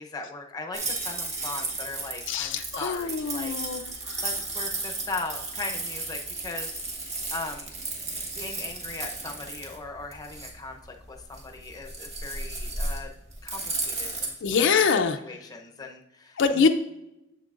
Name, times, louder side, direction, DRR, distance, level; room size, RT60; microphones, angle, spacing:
voice 1, 0.0-3.5 4.2-6.8 7.1-7.8 8.3-13.1 13.4-14.4 14.7-14.8 15.2-16.7, left 3 dB, 20° left, 3 dB, 0.7 m, -39 dB
sound 1, 0.7-14.3, right 2 dB, 35° right, 1.5 m, -34 dB
voice 2, 2.3-4.2 14.4-15.2 16.4-16.7, left 5 dB, 65° left, 6 dB, 0.5 m, -24 dB
7.6 x 7.2 x 2.4 m, 0.86 s
head